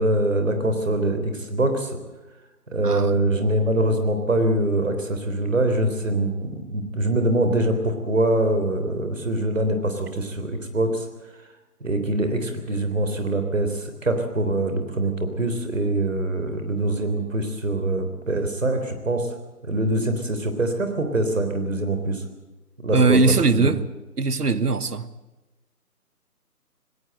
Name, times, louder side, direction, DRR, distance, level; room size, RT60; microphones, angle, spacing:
voice 1, 0.0-2.0 2.7-11.1 11.8-19.3 19.6-22.2 22.8-23.2 23.6-23.7, right 1 dB, 55° right, 7 dB, 3.7 m, -24 dB
voice 2, 2.8-3.2 22.9-23.8 24.2-25.1, right 3 dB, 75° right, 14 dB, 1.4 m, -20 dB
19.0 x 18.5 x 7.9 m, 1.1 s
figure-of-eight pair, 175°, 47 cm